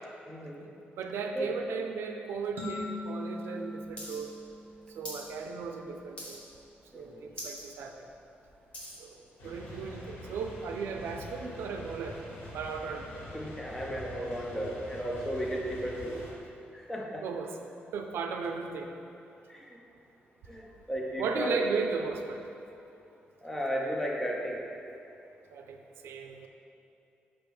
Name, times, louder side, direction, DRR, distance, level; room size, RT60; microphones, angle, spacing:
voice 1, 0.3-0.7 1.4-1.5 6.9-7.2 13.3-16.2 16.7-17.2 19.5-19.8 20.5-21.7 23.4-24.6, equal, 10° left, -1 dB, 0.6 m, -34 dB
voice 2, 1.0-4.3 4.9-6.4 6.9-8.1 9.0-12.2 12.5-13.1 17.2-17.5 17.9-18.9 21.2-22.4 25.5-26.5, right 5 dB, 80° right, 4 dB, 0.4 m, -36 dB
sound 1, 2.6-5.2, left 2 dB, 50° right, 1.2 m, -40 dB
sound 2, 4.0-4.2 4.4-5.3 5.6-5.9 6.2-6.6 7.0-7.1 7.3-7.6 8.1-9.0 9.7-9.8, equal, 30° left, 1.3 m, -42 dB
sound 3, 9.4-16.3, left 1 dB, 85° left, 1.3 m, -45 dB
6.0 x 5.1 x 3.5 m, 2.7 s
wide cardioid pair, 160°, 4 cm